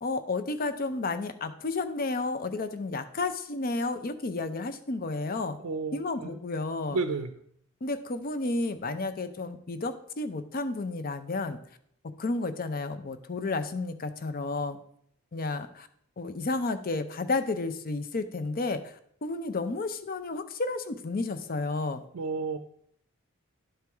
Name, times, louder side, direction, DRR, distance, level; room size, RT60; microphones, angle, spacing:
voice 1, 0.0-5.6 5.9-7.0 7.8-11.6 12.0-14.8 15.3-15.9 16.2-22.0, left 3 dB, 40° left, 11 dB, 0.5 m, -32 dB
voice 2, 5.6-6.4 6.9-7.3 22.1-22.6, right 4 dB, 90° right, 6 dB, 0.5 m, -31 dB
11.0 x 4.6 x 3.5 m, 0.66 s
head